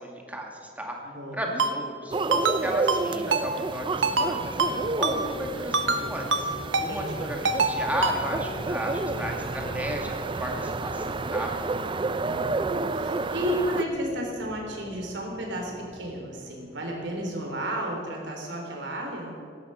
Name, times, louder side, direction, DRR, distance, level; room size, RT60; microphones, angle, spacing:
voice 1, 0.0-1.0 1.3-6.5 6.8-11.5, right 1 dB, 10° right, 0 dB, 2.3 m, -34 dB
voice 2, 1.0-1.6 6.9-7.3 12.2-19.3, equal, 70° right, 0 dB, 3.7 m, -33 dB
Ringtone, 1.6-1.7 2.3-2.6 2.9-3.0 3.3-3.4 4.0-4.3 4.6-4.7 5.0-5.2 5.7-6.0 6.3-6.4 6.7-6.9 7.4-7.7 8.0-8.2, right 4 dB, 85° right, 1.1 m, -23 dB
sound 1, 2.1-13.8, right 3 dB, 25° right, 0.5 m, -30 dB
sound 2, 2.4-17.8, equal, 60° left, 5.1 m, -44 dB
17.0 x 12.0 x 5.8 m, 2.3 s
head